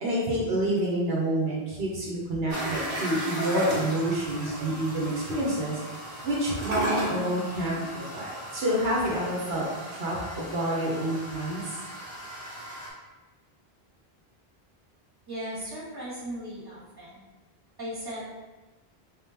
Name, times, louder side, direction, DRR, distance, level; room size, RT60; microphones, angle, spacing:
voice 1, 0.0-5.8 6.2-9.6 9.9-11.8, right 1 dB, 75° right, -4 dB, 1.1 m, -28 dB
sound 1, 2.5-12.9, right 1 dB, 40° right, 1.0 m, -36 dB
voice 2, 15.3-17.2 17.8-18.3, equal, 20° right, -8 dB, 1.6 m, -37 dB
3.8 x 3.6 x 2.8 m, 1.2 s
omnidirectional pair, 1.0 m